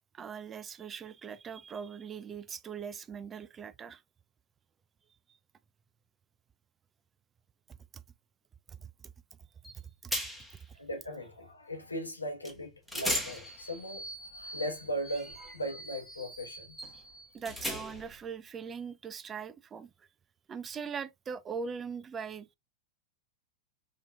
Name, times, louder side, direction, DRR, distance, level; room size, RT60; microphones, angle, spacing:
voice 1, 0.1-4.0 7.7-8.0 8.7-9.1 9.7-10.1 16.9-17.0 17.3-20.1 20.5-22.5, right 6 dB, 20° right, 0.3 m, -41 dB
sound 1, 9.6-9.8 10.1-10.6 12.4-12.6 12.9-18.2, equal, ahead, 1.2 m, -38 dB
voice 2, 10.7-16.8, equal, 80° left, 1.0 m, -38 dB
4.8 x 2.9 x 2.3 m
figure-of-eight pair, 90°, 0 cm